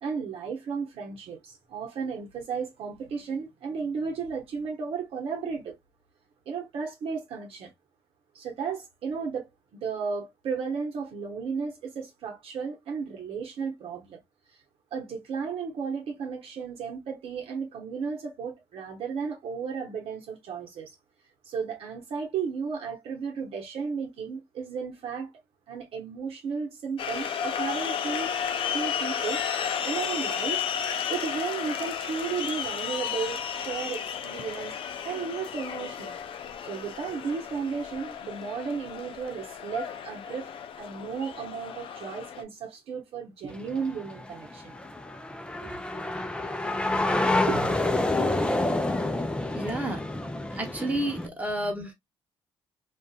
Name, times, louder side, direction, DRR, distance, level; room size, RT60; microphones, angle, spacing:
voice 1, 0.0-5.7 6.5-7.7 8.3-14.2 14.9-20.9 21.5-25.3 25.7-28.3 28.7-30.7 31.1-34.8 35.0-36.2 36.6-44.7 45.6-45.7 47.5-47.8, right 5 dB, 65° right, 0.9 m, -34 dB
sound 1, 27.0-42.4, left 8 dB, 55° left, 0.5 m, -33 dB
sound 2, 43.5-51.3, left 2 dB, 10° left, 0.6 m, -28 dB
voice 2, 49.5-50.0 50.5-51.9, right 1 dB, 15° right, 1.1 m, -30 dB
2.6 x 2.4 x 2.3 m
supercardioid pair, 60°, 11 cm